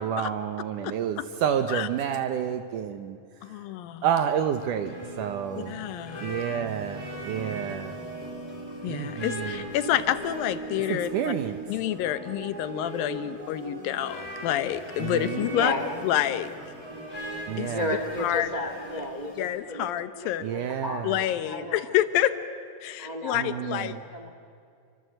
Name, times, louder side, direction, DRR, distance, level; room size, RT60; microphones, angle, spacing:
voice 1, 0.0-3.6 4.0-5.8 6.2-7.9 8.9-9.7 10.9-11.6 15.0-15.5 17.5-17.9 20.4-21.2 23.3-24.0, right 9 dB, 70° right, 9 dB, 2.2 m, -30 dB
voice 2, 3.4-4.0 5.7-6.3 8.8-11.3 11.7-15.7 16.0-16.5 17.6-17.7 18.2-18.5 19.4-20.4 21.0-22.3 22.8-23.9, left 12 dB, 80° left, 12 dB, 2.6 m, -28 dB
sound 1, 4.2-19.5, left 1 dB, 5° left, 7.9 m, -42 dB
sound 2, 4.8-18.5, right 4 dB, 30° right, 2.5 m, -41 dB
voice 3, 15.4-15.9 17.6-21.9 23.0-23.8 24.1-24.3, left 1 dB, 85° right, 4 dB, 0.3 m, -33 dB
27.5 x 24.5 x 7.9 m, 2.4 s
omnidirectional pair, 4.2 m